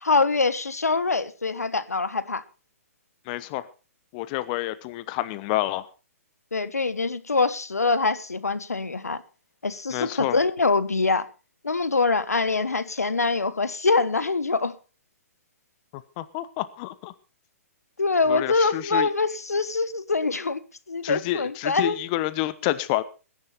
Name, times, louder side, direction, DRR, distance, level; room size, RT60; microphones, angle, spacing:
voice 1, 0.0-2.4 6.5-9.2 9.6-11.3 11.6-14.7 18.0-20.6 20.9-22.0, left 3 dB, 90° left, 1.2 m, -24 dB
voice 2, 3.3-3.6 4.1-5.9 9.9-10.4 16.2-17.1 18.3-19.1 21.0-23.0, left 15 dB, 35° left, 1.0 m, -28 dB
20.0 x 10.5 x 4.1 m
hypercardioid pair, 130°, 8 cm